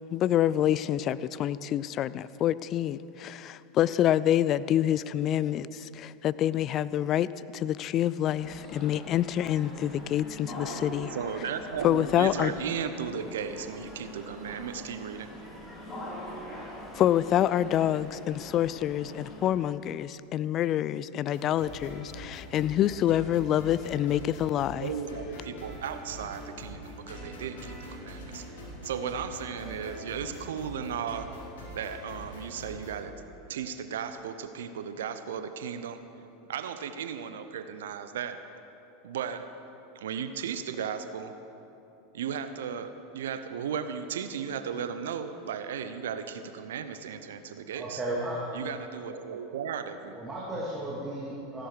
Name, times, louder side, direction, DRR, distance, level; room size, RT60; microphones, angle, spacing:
voice 1, 0.1-11.1 11.8-12.5 16.9-22.0 22.5-24.9, left 11 dB, 40° left, 17 dB, 0.4 m, -27 dB
sound 1, 8.3-19.5, equal, 25° left, 3.5 m, -43 dB
voice 2, 11.1-15.3 24.8-31.4 31.7-33.1 33.5-36.0 36.5-38.4 39.0-39.6 39.9-41.3 42.1-48.0 48.5-50.2, right 7 dB, 70° right, 10 dB, 0.7 m, -35 dB
sound 2, 21.3-33.0, equal, 70° left, 3.5 m, -43 dB
voice 3, 47.7-48.4 50.1-51.7, right 1 dB, 15° right, -7 dB, 2.7 m, -34 dB
15.5 x 11.0 x 4.8 m, 2.9 s
hypercardioid pair, 85°, 0 cm